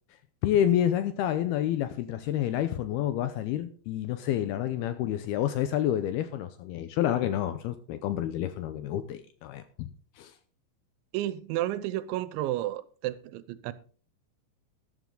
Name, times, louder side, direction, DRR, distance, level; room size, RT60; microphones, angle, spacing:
voice 1, 0.4-9.9 10.2-10.3, left 11 dB, 80° left, 2.4 m, -29 dB
voice 2, 11.1-13.7, right 14 dB, 85° right, 3.1 m, -32 dB
13.5 x 11.5 x 3.8 m
omnidirectional pair, 5.2 m